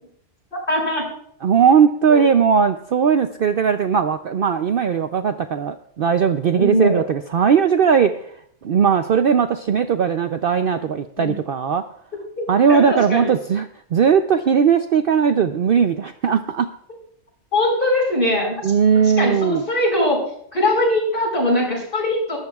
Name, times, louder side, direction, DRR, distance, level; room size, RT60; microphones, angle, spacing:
voice 1, 0.5-1.1 2.1-2.2 6.5-7.0 11.2-11.3 12.4-13.3 17.5-18.7 19.2-20.2 20.5-22.4, left 1 dB, 40° left, -2 dB, 5.7 m, -21 dB
voice 2, 1.4-8.1 8.6-11.8 12.5-13.7 13.9-16.7 18.6-19.6, right 7 dB, 55° right, 8 dB, 0.6 m, -18 dB
20.5 x 13.0 x 2.4 m, 0.67 s
omnidirectional pair, 1.3 m